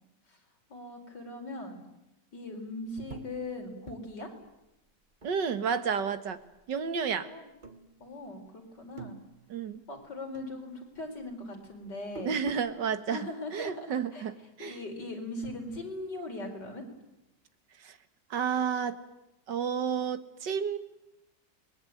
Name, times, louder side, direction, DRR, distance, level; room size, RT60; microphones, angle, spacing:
voice 1, 0.7-1.8 2.3-4.3 7.2-7.5 8.0-9.2 9.9-12.4 13.1-14.3 14.6-16.8, left 2 dB, 80° left, 2 dB, 5.3 m, -40 dB
sound 1, 3.1-6.0 6.3-7.1 7.6-8.5 8.7-10.1 10.3-12.8, right 4 dB, 30° right, 1.7 m, -49 dB
voice 2, 5.2-6.4 6.7-7.3 9.5-9.8 12.2-14.8 17.8-18.0 18.3-19.0 19.5-20.8, right 6 dB, 85° right, 11 dB, 2.2 m, -31 dB
29.0 x 21.5 x 9.3 m, 0.92 s
omnidirectional pair, 1.8 m